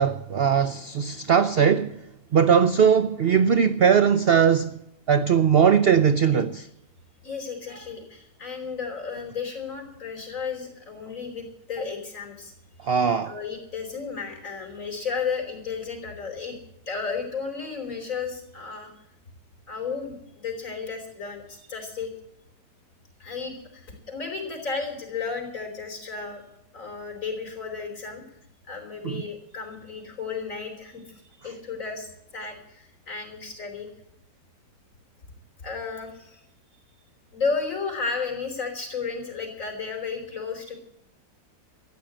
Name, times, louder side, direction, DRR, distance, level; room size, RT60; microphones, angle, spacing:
voice 1, 0.0-1.9 2.3-4.8 5.1-6.7 12.8-13.3 29.0-29.2, right 7 dB, 70° right, 0.5 m, -20 dB
voice 2, 7.2-12.5 13.2-16.6 16.9-18.9 19.7-22.1 23.2-26.4 26.7-28.2 28.7-33.9 35.6-36.4 37.3-40.7, left 5 dB, 50° left, 5.0 m, -33 dB
14.0 x 10.5 x 8.6 m
omnidirectional pair, 1.8 m